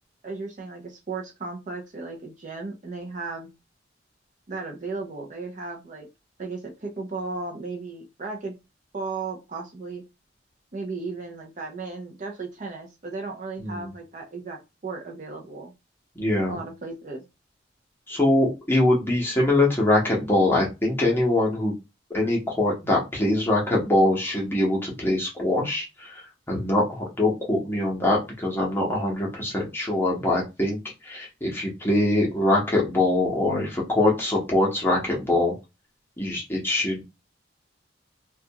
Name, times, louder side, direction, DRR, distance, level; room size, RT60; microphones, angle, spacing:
voice 1, 0.2-3.5 4.5-6.1 6.4-8.5 8.9-10.0 10.7-15.7 16.5-17.3, right 3 dB, 40° right, 2 dB, 0.5 m, -35 dB
voice 2, 16.2-16.6 18.1-21.7 22.1-26.2 26.5-30.8 31.0-35.5 36.2-37.0, left 1 dB, 10° left, -3 dB, 0.8 m, -23 dB
2.4 x 2.2 x 2.7 m, 0.25 s
head